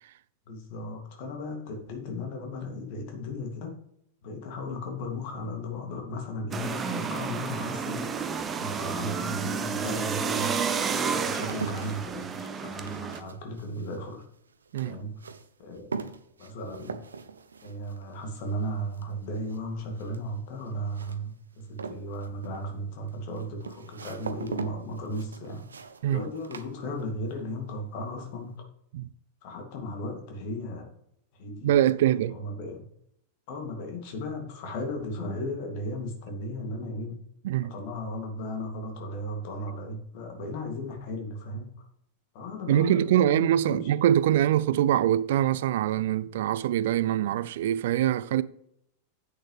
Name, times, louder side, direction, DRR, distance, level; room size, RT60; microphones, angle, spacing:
voice 1, 0.5-3.8 4.2-8.3 8.6-10.6 11.1-14.2 14.8-15.2 15.6-16.0 16.4-17.0 17.6-25.7 26.1-28.7 29.4-30.9 31.4-31.7 32.3-32.8 33.5-37.2 37.6-41.7 42.3-43.9, left 1 dB, 50° left, 2.3 m, -36 dB
sound 1, 6.5-13.2, right 6 dB, 20° right, 0.8 m, -31 dB
sound 2, 11.3-27.4 27.7-28.3, right 5 dB, 70° right, 0.8 m, -42 dB
voice 2, 31.6-32.4 37.4-37.7 42.7-48.4, right 11 dB, 55° right, 0.4 m, -24 dB
9.9 x 8.6 x 3.2 m
figure-of-eight pair, 90°, 0 cm